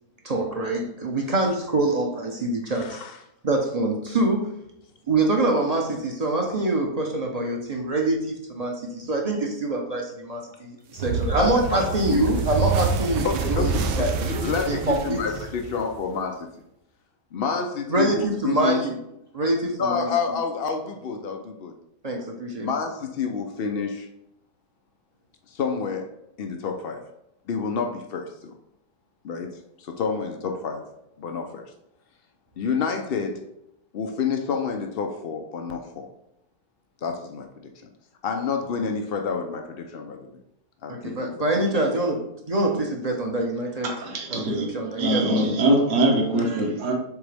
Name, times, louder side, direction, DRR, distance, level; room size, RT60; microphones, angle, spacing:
voice 1, 0.2-3.0 3.4-4.5 5.1-13.7 14.0-14.1 14.7-15.2 17.9-19.0 19.3-20.4 22.0-22.7 40.9-43.9 44.3-46.1, right 2 dB, 40° right, 1 dB, 0.5 m, -25 dB
voice 2, 2.7-3.2 11.4-12.2 13.2-16.5 17.3-18.8 19.8-21.7 22.6-24.1 25.5-27.0 27.5-28.5 29.2-30.8 31.2-31.7 32.6-33.5 33.9-36.1 37.0-37.5 38.2-40.4 40.8-41.4, left 5 dB, 90° left, 4 dB, 0.5 m, -29 dB
sound 1, 11.0-16.1, right 4 dB, 85° right, 1.3 m, -27 dB
voice 3, 43.8-44.7 45.0-46.9, right 1 dB, 60° right, 0 dB, 1.6 m, -22 dB
7.1 x 4.0 x 3.4 m, 0.81 s
omnidirectional pair, 1.8 m